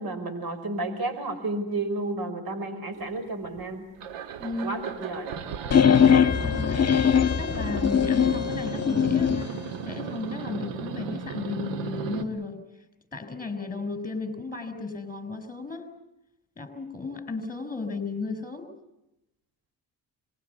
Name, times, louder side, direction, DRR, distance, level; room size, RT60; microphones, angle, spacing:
voice 1, 0.0-3.9 4.6-5.4, right 2 dB, 55° right, 10 dB, 5.5 m, -31 dB
sound 1, 3.1-3.6 4.0-12.2, right 7 dB, 85° right, 2.0 m, -36 dB
voice 2, 4.4-4.8 6.4-9.6 9.8-12.6 13.1-15.9 16.6-18.7, left 3 dB, 20° left, 10 dB, 6.3 m, -34 dB
sound 2, 5.7-9.5, left 7 dB, 35° left, 1.7 m, -21 dB
26.0 x 22.0 x 8.4 m, 0.90 s
supercardioid pair, 70°, 43 cm